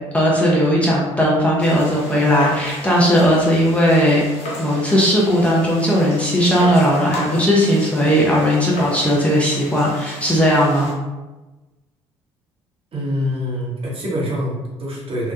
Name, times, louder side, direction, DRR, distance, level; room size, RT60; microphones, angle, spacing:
voice 1, 0.1-4.2 4.6-10.9, equal, 10° left, -5 dB, 0.6 m, -17 dB
sound 1, 1.6-10.9, left 1 dB, 45° left, 0.8 m, -34 dB
voice 2, 12.9-15.3, equal, 40° right, -4 dB, 0.8 m, -25 dB
2.7 x 2.1 x 2.3 m, 1.1 s
figure-of-eight pair, 50°, 15 cm